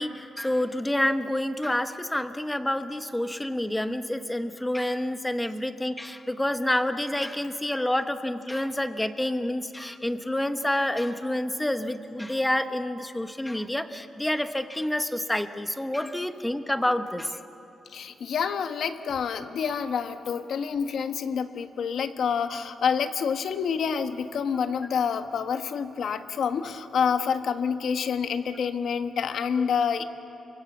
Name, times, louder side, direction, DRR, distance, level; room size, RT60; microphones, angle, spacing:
voice 1, 0.0-17.4 29.6-29.7, left 1 dB, 10° left, 9 dB, 1.1 m, -28 dB
voice 2, 17.9-30.0, left 6 dB, 70° left, 8 dB, 1.3 m, -28 dB
30.0 x 24.0 x 7.3 m, 3.0 s
cardioid pair, 115°, 0 cm